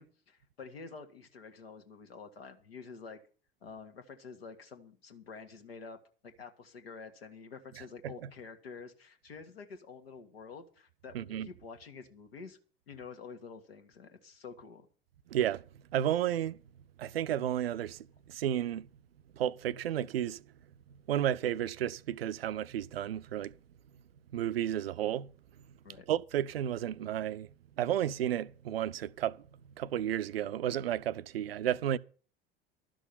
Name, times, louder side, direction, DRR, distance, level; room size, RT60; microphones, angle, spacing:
voice 1, 0.0-3.2 3.6-6.0 6.2-12.6 12.9-14.9 25.8-26.1, left 5 dB, 75° left, 1.6 m, -48 dB
voice 2, 11.1-11.5 15.3-15.6 15.9-16.6 17.0-18.0 18.3-18.9 19.4-20.4 21.1-23.5 24.3-25.3 26.1-27.5 27.8-29.4 29.8-32.0, right 11 dB, 70° right, 0.6 m, -32 dB
12.5 x 6.3 x 8.4 m
figure-of-eight pair, 75°, 31 cm